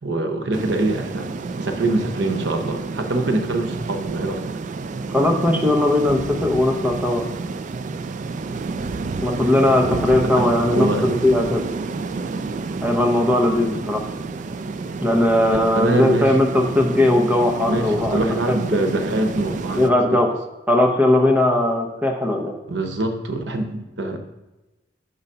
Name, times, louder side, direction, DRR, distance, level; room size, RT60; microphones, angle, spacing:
voice 1, 0.0-4.4 9.8-11.4 15.7-16.4 17.7-20.2 22.7-24.2, right 2 dB, 70° right, 6 dB, 0.8 m, -24 dB
sound 1, 0.5-19.9, right 4 dB, 40° right, 0.3 m, -30 dB
voice 2, 5.1-7.3 9.2-11.6 12.8-14.0 15.0-18.8 19.8-20.3 20.7-22.5, left 1 dB, 10° right, 2 dB, 0.9 m, -19 dB
6.7 x 3.9 x 5.5 m, 1.0 s
head